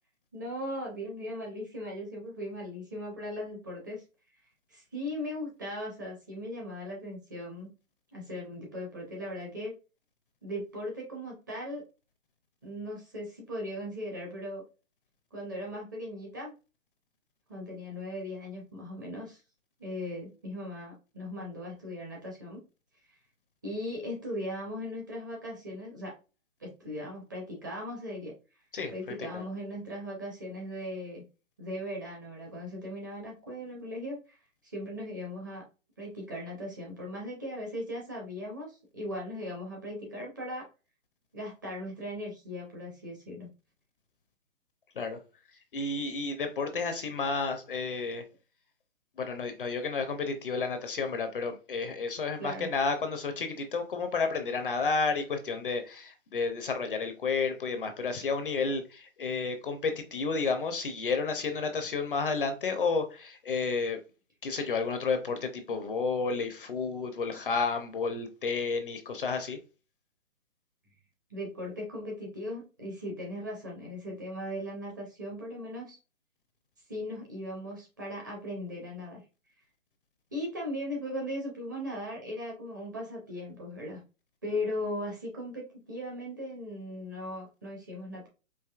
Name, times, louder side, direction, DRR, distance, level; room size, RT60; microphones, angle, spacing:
voice 1, 0.3-4.0 4.7-7.7 8.1-9.7 10.4-11.8 12.6-14.6 15.3-16.5 17.5-19.4 19.8-22.6 23.6-26.1 26.6-28.3 28.9-31.2 31.6-34.4 34.7-35.6 36.0-40.6 41.3-43.5 52.4-52.7 71.3-76.0 76.9-79.2 80.3-84.0 84.4-88.3, left 1 dB, 15° right, 0.6 m, -38 dB
voice 2, 28.7-29.4 45.0-45.2 45.7-48.2 49.2-64.0 64.4-69.6, left 4 dB, 40° left, 0.6 m, -31 dB
4.8 x 2.6 x 2.3 m
hypercardioid pair, 155°, 40 cm